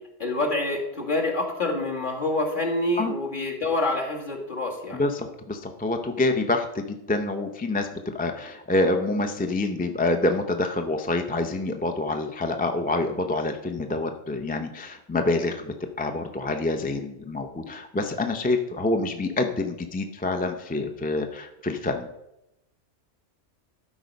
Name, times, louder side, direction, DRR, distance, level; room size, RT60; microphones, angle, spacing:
voice 1, 0.2-5.0, left 2 dB, 40° left, -1 dB, 1.9 m, -27 dB
voice 2, 4.9-22.1, left 2 dB, 15° left, 5 dB, 0.3 m, -27 dB
12.0 x 4.7 x 5.2 m, 0.85 s
omnidirectional pair, 1.3 m